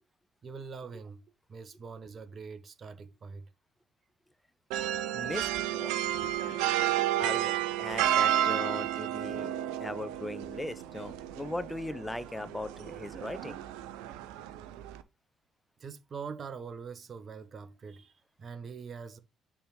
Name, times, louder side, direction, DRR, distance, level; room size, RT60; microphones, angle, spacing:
voice 1, 0.4-1.2 1.5-3.5 15.8-19.2, right 5 dB, 45° right, 1.1 m, -43 dB
sound 1, 4.7-15.0, right 11 dB, 75° right, 0.6 m, -32 dB
voice 2, 5.1-6.0 6.4-6.6 7.2-9.5 9.8-13.6, left 1 dB, 10° left, 0.9 m, -39 dB
6.8 x 3.6 x 5.4 m
hypercardioid pair, 50°, 0 cm